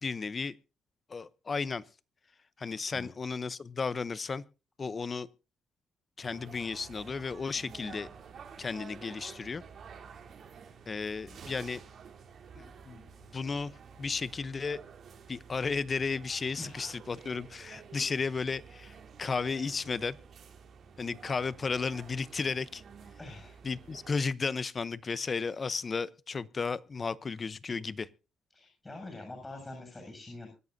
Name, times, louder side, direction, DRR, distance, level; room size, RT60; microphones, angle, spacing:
voice 1, 0.0-0.6 1.1-1.8 2.6-4.4 4.8-5.3 6.2-8.1 8.6-9.6 10.9-11.8 12.5-13.7 14.0-14.8 15.3-20.2 21.0-22.8 23.6-28.1, left 4 dB, 35° left, 0.7 m, -34 dB
sound 1, 6.2-24.2, right 6 dB, 60° right, 3.5 m, -51 dB
voice 2, 16.6-17.0 23.2-23.5 28.5-30.5, left 2 dB, 20° left, 7.3 m, -45 dB
25.0 x 11.0 x 2.7 m
cardioid pair, 90°, 0 cm